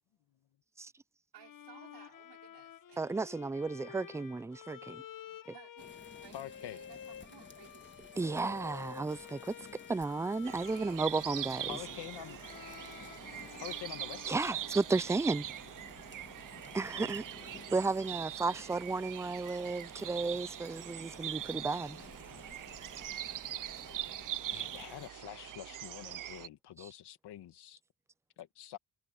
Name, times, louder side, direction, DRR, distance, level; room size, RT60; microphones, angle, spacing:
voice 1, 1.3-3.1 5.5-9.3, right 12 dB, 80° right, 4.8 m, -59 dB
Bowed string instrument, 1.4-15.3, left 9 dB, 55° left, 1.3 m, -51 dB
voice 2, 3.0-5.0 8.2-9.6 9.9-11.8 14.3-15.5 16.7-17.2 17.7-22.0 26.8-26.9, right 3 dB, 5° right, 0.4 m, -33 dB
sound 1, 5.8-25.1, left 4 dB, 30° left, 1.6 m, -55 dB
voice 3, 6.3-6.8 11.7-12.4 13.6-14.5 16.9-17.1 24.5-27.8 28.4-28.8, left 12 dB, 80° left, 1.8 m, -46 dB
sound 2, 10.5-26.5, right 12 dB, 50° right, 0.6 m, -42 dB
cardioid pair, 75°, 40 cm